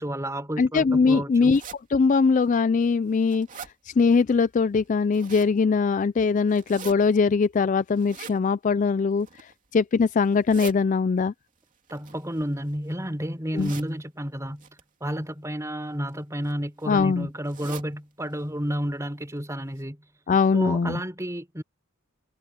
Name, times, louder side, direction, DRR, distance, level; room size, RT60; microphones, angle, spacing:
voice 1, 0.0-1.5 11.9-14.7 15.0-20.0 20.5-21.6, equal, 15° right, 4.5 m, -31 dB
voice 2, 0.6-1.6 1.9-3.5 3.9-9.3 9.7-11.3 13.5-13.7 16.9-17.3 20.3-21.0, left 5 dB, 35° left, 0.3 m, -21 dB
sound 1, 1.5-1.8 2.4-2.5 3.0-3.7 4.9-5.5 6.5-6.9 7.9-8.4 9.1-9.5 10.2-10.8 11.9-12.9 13.6-13.9 14.6-14.8 15.8-16.1 16.4-16.5 16.8-16.9 17.4-17.9 18.3-18.4 18.7-18.8 19.4-19.5 19.8-19.9, right 6 dB, 35° right, 2.9 m, -42 dB
head